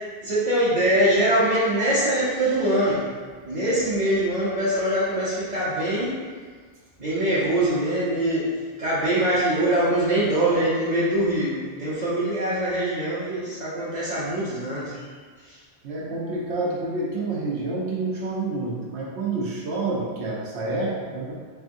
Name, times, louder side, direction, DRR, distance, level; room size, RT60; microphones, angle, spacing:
voice 1, 0.2-3.0 3.4-6.1 7.0-8.4 8.8-11.5 11.8-14.9, right 1 dB, 45° right, -11 dB, 0.9 m, -23 dB
voice 2, 15.8-21.3, right 2 dB, 80° right, -4 dB, 1.1 m, -28 dB
3.7 x 3.4 x 2.6 m, 1.6 s
omnidirectional pair, 1.1 m